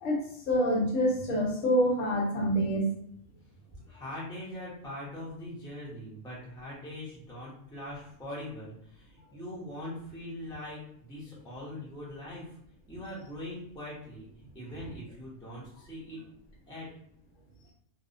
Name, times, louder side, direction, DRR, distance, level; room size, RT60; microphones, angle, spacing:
voice 1, 0.0-2.9, equal, 75° left, 0 dB, 1.1 m, -27 dB
voice 2, 3.9-12.4 12.9-14.3 14.5-16.2 16.7-16.9, left 1 dB, 5° left, -7 dB, 0.5 m, -42 dB
2.6 x 2.0 x 2.5 m, 0.70 s
omnidirectional pair, 1.3 m